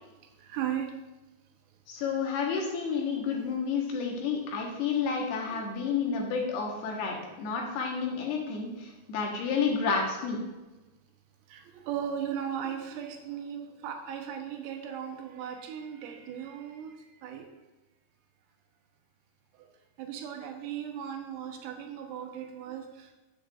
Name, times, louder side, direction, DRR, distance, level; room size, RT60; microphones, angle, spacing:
voice 1, 0.4-0.9 5.5-5.8 6.0-6.2 11.5-17.4 19.6-19.7 20.0-23.1, right 9 dB, 85° right, 4 dB, 2.8 m, -37 dB
voice 2, 1.9-10.4, left 5 dB, 85° left, 0 dB, 3.5 m, -30 dB
10.0 x 8.3 x 2.5 m, 1.1 s
omnidirectional pair, 4.5 m